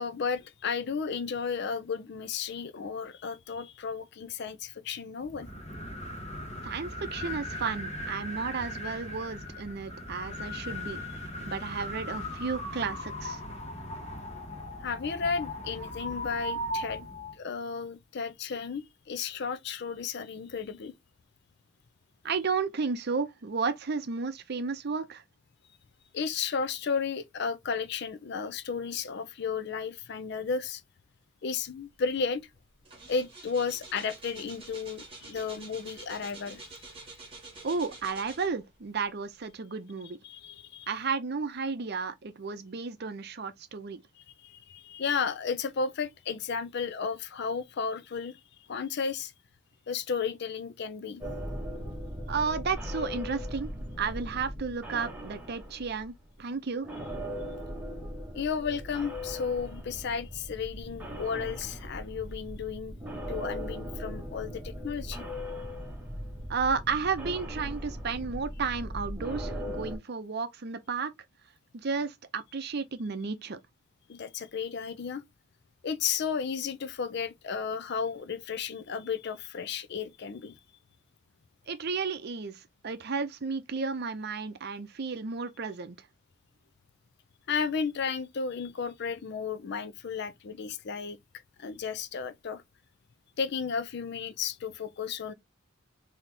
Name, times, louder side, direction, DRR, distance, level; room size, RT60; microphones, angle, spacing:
voice 1, 0.0-5.5 14.8-17.1 17.3-20.9 26.1-30.8 31.4-32.5 33.1-36.9 40.2-40.9 44.4-48.4 48.7-49.3 49.9-51.2 58.3-63.0 63.3-65.2 74.1-75.2 75.8-80.5 87.5-91.2 91.6-92.6 93.4-95.3, left 6 dB, 55° left, 0.5 m, -33 dB
sound 1, 5.2-17.4, left 1 dB, 30° left, 1.2 m, -38 dB
voice 2, 6.6-11.0 11.5-13.4 22.2-25.2 37.6-40.2 40.9-44.0 52.3-53.7 54.0-56.1 56.4-56.9 66.5-71.1 71.7-73.6 81.7-86.1, right 5 dB, 55° right, 0.6 m, -33 dB
sound 2, 32.1-32.3 32.6-38.8 39.4-39.5, right 3 dB, 25° right, 1.4 m, -48 dB
sound 3, 51.2-56.5 56.8-70.0, equal, 10° right, 1.3 m, -39 dB
4.1 x 2.8 x 3.3 m
head